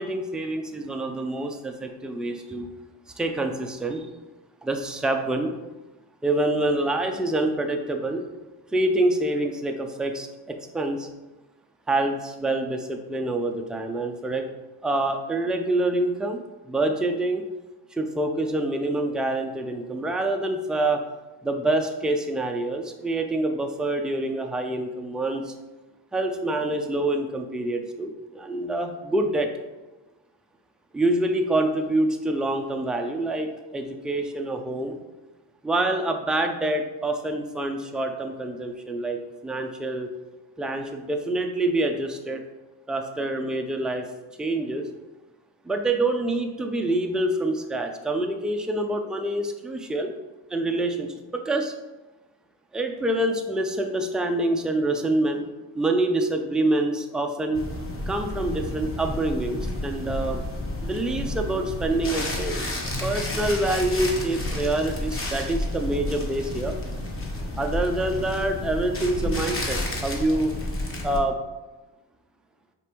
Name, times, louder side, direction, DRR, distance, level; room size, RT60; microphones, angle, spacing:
voice 1, 0.0-2.7 3.2-4.1 4.6-5.5 6.2-8.3 8.7-11.1 11.9-14.5 14.8-17.4 17.9-21.0 21.4-25.5 26.1-29.5 30.9-35.0 35.6-40.1 40.6-42.4 42.9-44.1 44.4-44.9 45.6-50.1 50.5-51.7 52.7-55.5 55.8-57.7 58.1-60.4 60.8-62.7 63.0-66.7 67.6-70.5 71.0-71.4, right 2 dB, ahead, 4 dB, 0.3 m, -26 dB
sound 1, 57.5-71.2, left 1 dB, 25° left, 1.0 m, -31 dB
5.0 x 3.4 x 3.0 m, 1.1 s
supercardioid pair, 75°, 48 cm